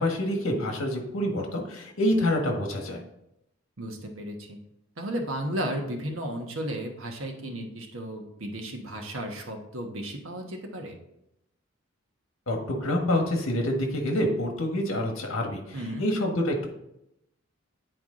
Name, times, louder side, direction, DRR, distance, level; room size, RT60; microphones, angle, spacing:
voice 1, 0.0-3.0 12.5-16.7, left 1 dB, 75° left, 2 dB, 1.4 m, -27 dB
voice 2, 3.8-4.6 5.0-10.9 15.7-16.1, right 1 dB, 75° right, 2 dB, 1.3 m, -34 dB
9.0 x 4.6 x 3.8 m, 0.83 s
head